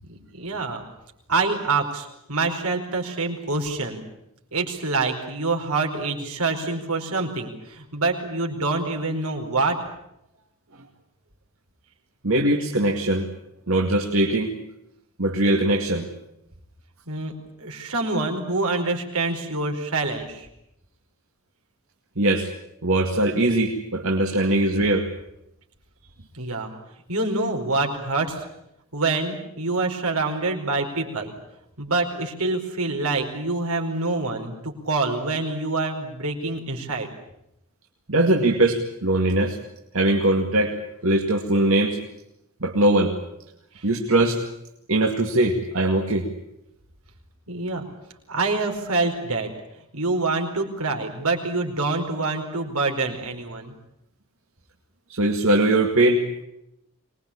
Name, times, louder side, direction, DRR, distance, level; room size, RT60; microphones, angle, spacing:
voice 1, 0.1-0.8 1.3-4.0 4.5-9.8 17.1-17.3 17.6-20.5 26.3-26.7 27.1-28.4 28.9-31.3 31.8-37.1 43.7-43.9 47.5-47.8 48.3-49.5 49.9-53.7, right 3 dB, 85° right, 3 dB, 4.9 m, -26 dB
voice 2, 12.2-13.3 13.7-14.5 15.2-16.1 22.2-22.5 22.8-25.1 38.1-39.6 39.9-40.7 41.0-42.0 42.6-43.1 43.8-44.4 44.9-46.3 55.1-56.4, right 1 dB, 70° right, 1 dB, 2.4 m, -21 dB
24.5 x 21.5 x 8.7 m, 0.81 s
head